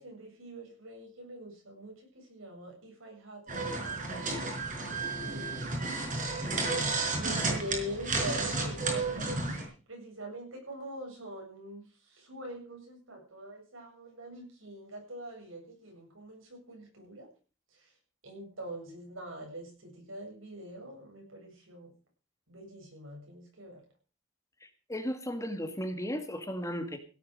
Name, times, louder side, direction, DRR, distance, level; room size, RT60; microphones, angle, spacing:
voice 1, 0.0-4.0 5.1-5.7 6.2-6.6 6.9-17.3 17.7-17.9 18.2-21.9 22.5-23.8, equal, 85° right, 1 dB, 7.8 m, -44 dB
sound 1, 3.5-9.6, right 3 dB, 40° right, 4.8 m, -32 dB
voice 2, 24.6-27.0, equal, 15° left, 7 dB, 1.8 m, -35 dB
16.5 x 8.8 x 6.4 m, 0.37 s
head